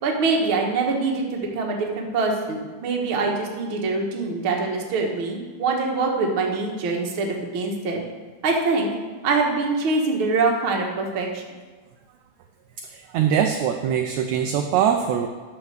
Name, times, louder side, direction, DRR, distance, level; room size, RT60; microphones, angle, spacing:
voice 1, 0.0-8.0 8.4-8.9 9.2-11.4, right 3 dB, 50° right, 0 dB, 1.7 m, -24 dB
voice 2, 12.8-15.3, right 8 dB, 80° right, 5 dB, 1.8 m, -22 dB
11.5 x 4.4 x 6.5 m, 1.4 s
omnidirectional pair, 3.6 m